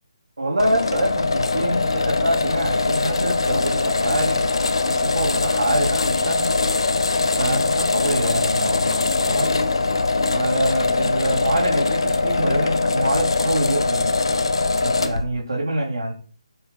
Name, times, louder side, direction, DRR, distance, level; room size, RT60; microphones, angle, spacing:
voice 1, 0.4-4.4 4.9-6.5 7.4-9.6 10.3-14.2 14.8-16.1, right 1 dB, 65° right, -2 dB, 2.1 m, -25 dB
sound 1, 0.6-15.3, left 3 dB, 55° left, 0.7 m, -22 dB
8.0 x 4.7 x 4.0 m, 0.44 s
figure-of-eight pair, 145°, 3 cm